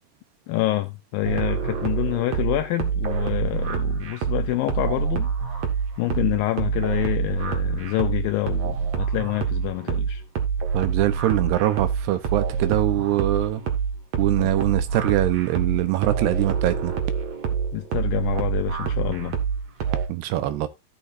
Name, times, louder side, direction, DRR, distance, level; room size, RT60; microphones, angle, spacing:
voice 1, 0.5-5.7 6.0-10.2 17.7-19.4, left 16 dB, 85° left, 2.0 m, -27 dB
sound 1, 1.2-20.1, right 6 dB, 50° right, 2.5 m, -26 dB
voice 2, 10.7-13.6 14.2-16.9 20.1-20.7, right 14 dB, 80° right, 3.0 m, -23 dB
16.0 x 6.5 x 2.7 m
omnidirectional pair, 4.7 m